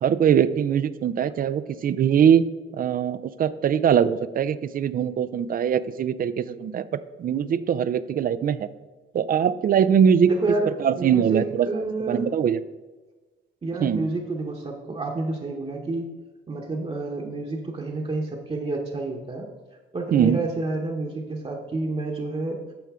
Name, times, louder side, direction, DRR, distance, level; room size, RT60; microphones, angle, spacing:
voice 1, 0.0-2.4 2.7-6.8 7.2-8.7 9.1-10.3 10.8-12.6 13.8-14.1 20.1-20.4, right 8 dB, 45° right, 15 dB, 0.4 m, -22 dB
voice 2, 10.3-10.7 10.9-12.3 13.6-16.1 16.5-19.5 19.9-22.6, right 2 dB, 30° right, -1 dB, 1.0 m, -29 dB
9.1 x 6.2 x 3.6 m, 1.3 s
cardioid pair, 90°, 20 cm